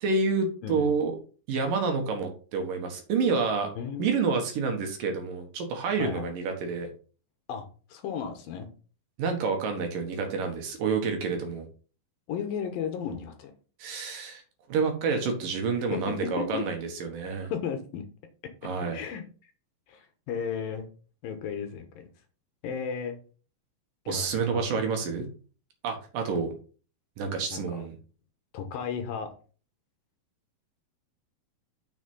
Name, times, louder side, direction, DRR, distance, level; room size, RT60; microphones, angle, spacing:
voice 1, 0.0-1.1 1.5-3.7 4.0-6.9 9.2-11.7 13.8-14.4 14.7-17.5 18.6-19.0 24.1-25.3 25.8-26.5 27.2-28.0, right 4 dB, 65° right, 4 dB, 2.9 m, -28 dB
voice 2, 3.8-4.1 6.0-6.3 7.5-7.6 7.9-8.7 12.3-13.5 15.9-16.0 16.4-16.6 17.5-18.0 18.9-19.5 19.9-20.9 21.2-22.1 22.6-23.2 24.1-24.9 27.5-27.8 28.5-29.3, left 7 dB, 70° left, 6 dB, 2.7 m, -34 dB
6.8 x 6.1 x 5.4 m, 0.38 s
omnidirectional pair, 4.6 m